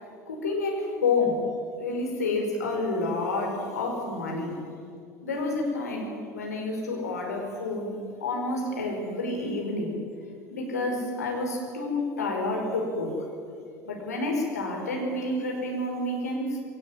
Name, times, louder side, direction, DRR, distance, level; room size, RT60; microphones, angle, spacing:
voice 1, 0.3-1.4 1.8-4.6 5.2-10.0 10.5-13.2 13.8-16.6, left 2 dB, 75° left, 0 dB, 5.2 m, -29 dB
21.5 x 18.5 x 9.7 m, 2.3 s
figure-of-eight pair, 70°, 9 cm